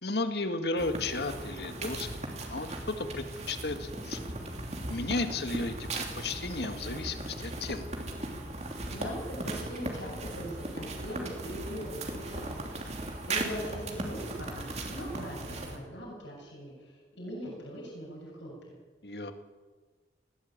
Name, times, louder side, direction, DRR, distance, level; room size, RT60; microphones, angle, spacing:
voice 1, 0.0-4.2 4.9-7.9 19.0-19.3, left 2 dB, 60° left, 8 dB, 2.0 m, -34 dB
sound 1, 0.8-15.8, right 2 dB, 35° right, 3.1 m, -38 dB
voice 2, 8.9-18.7, equal, 80° left, -2 dB, 7.2 m, -41 dB
19.5 x 17.5 x 8.9 m, 1.4 s
head